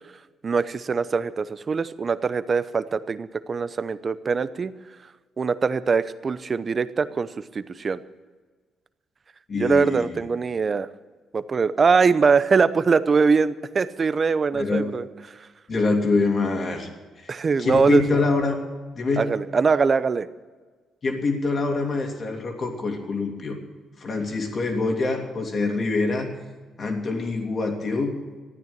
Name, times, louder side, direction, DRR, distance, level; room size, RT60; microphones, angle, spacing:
voice 1, 0.4-4.7 5.4-7.3 7.5-8.0 9.6-10.9 11.3-15.1 17.3-18.0 19.2-20.3, right 5 dB, 40° right, 14 dB, 0.7 m, -22 dB
voice 2, 9.5-10.2 14.5-14.9 15.7-16.9 17.2-17.3 17.6-18.6 18.9-19.3 21.0-23.5 24.0-26.3 26.8-28.1, left 3 dB, 45° left, 2 dB, 2.9 m, -25 dB
13.5 x 9.4 x 8.7 m, 1.4 s
cardioid pair, 90°, 0 cm